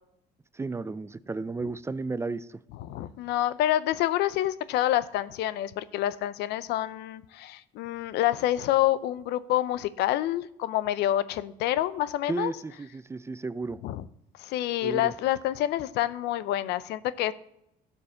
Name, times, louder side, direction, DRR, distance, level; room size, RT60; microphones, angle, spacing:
voice 1, 0.5-2.6 12.3-13.8 14.8-15.1, right 3 dB, 15° right, 16 dB, 0.4 m, -33 dB
voice 2, 2.8-12.5 13.8-14.0 14.4-17.3, left 13 dB, 85° left, 16 dB, 0.6 m, -27 dB
12.0 x 5.4 x 7.0 m, 0.80 s
cardioid pair, 110°, 17 cm